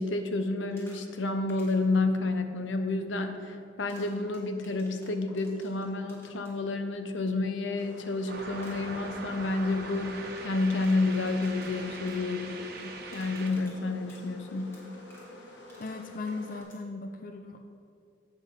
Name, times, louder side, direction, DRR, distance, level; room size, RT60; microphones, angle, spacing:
voice 1, 0.0-14.8, left 3 dB, 85° left, 7 dB, 0.8 m, -30 dB
sound 1, 0.6-1.2 1.5-1.9 3.9-6.6 8.6-8.7 10.6-16.8, equal, 15° left, 2.4 m, -55 dB
sound 2, 7.8-16.6, equal, 70° left, 1.4 m, -49 dB
sound 3, 8.3-13.5, right 3 dB, 55° right, 1.3 m, -42 dB
voice 2, 15.8-17.6, left 3 dB, 45° left, 6 dB, 0.5 m, -37 dB
11.5 x 7.9 x 4.7 m, 2.5 s
head